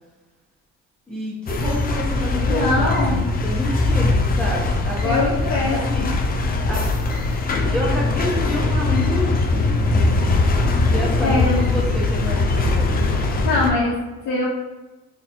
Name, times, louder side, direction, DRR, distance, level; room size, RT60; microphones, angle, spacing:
voice 1, 1.1-5.4 5.7-6.1 6.7-6.8 7.2-7.3 7.7-10.4 10.9-13.2, left 1 dB, 5° left, -8 dB, 0.9 m, -28 dB
sound 1, 1.5-13.7, left 2 dB, 25° left, 0.4 m, -21 dB
voice 2, 2.5-3.2 5.0-6.1 11.2-11.6 13.4-14.5, left 2 dB, 55° left, -5 dB, 0.7 m, -22 dB
3.9 x 2.7 x 2.7 m, 1.1 s
cardioid pair, 125°, 35 cm